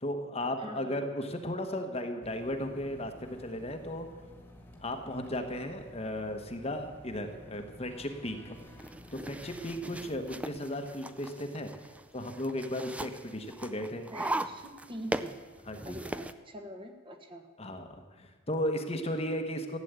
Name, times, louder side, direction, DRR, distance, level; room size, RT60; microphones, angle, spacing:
voice 1, 0.0-4.1 4.8-8.5 9.1-11.7 12.1-14.1 15.7-16.0 17.6-19.8, left 1 dB, 30° left, 5 dB, 1.2 m, -35 dB
voice 2, 0.6-1.0 14.1-15.4 15.8-17.5, equal, 25° right, 4 dB, 1.4 m, -44 dB
sound 1, 2.2-10.4, left 1 dB, 10° left, 1.8 m, -52 dB
sound 2, 8.6-16.3, right 1 dB, 5° right, 0.4 m, -39 dB
15.0 x 9.6 x 8.1 m, 1.5 s
head